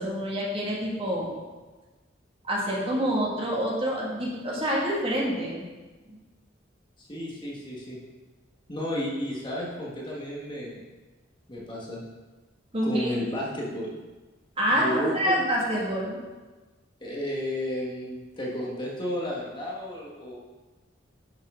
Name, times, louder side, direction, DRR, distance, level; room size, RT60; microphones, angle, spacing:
voice 1, 0.0-1.3 2.4-5.7 6.1-6.2 12.7-13.1 14.6-16.2, equal, 30° right, -4 dB, 1.9 m, -27 dB
voice 2, 7.0-8.0 8.7-10.8 11.5-12.0 12.8-14.0 14.7-15.4 17.0-20.4, left 1 dB, 25° left, -4 dB, 1.4 m, -32 dB
10.5 x 5.6 x 3.7 m, 1.2 s
head